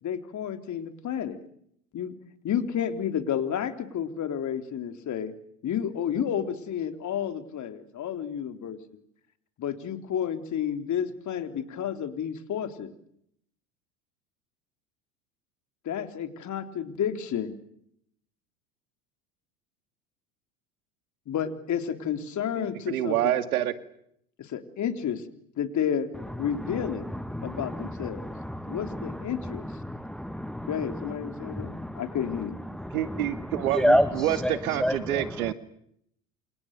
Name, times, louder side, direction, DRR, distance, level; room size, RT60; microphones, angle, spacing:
voice 1, 0.0-1.4 1.9-2.1 2.4-5.3 5.6-8.8 9.6-12.9 15.8-17.6 21.3-23.4 24.4-25.2 25.6-26.1 26.4-27.1 27.4-28.3 28.7-29.6 30.7-32.6, left 8 dB, 40° left, 8 dB, 3.7 m, -31 dB
voice 2, 22.6-23.7 32.9-35.5, right 12 dB, 75° right, 12 dB, 2.2 m, -27 dB
voice 3, 26.4-32.2 32.7-35.5, equal, ahead, 13 dB, 1.3 m, -30 dB
28.5 x 28.0 x 6.8 m, 0.72 s
hypercardioid pair, 85°, 43 cm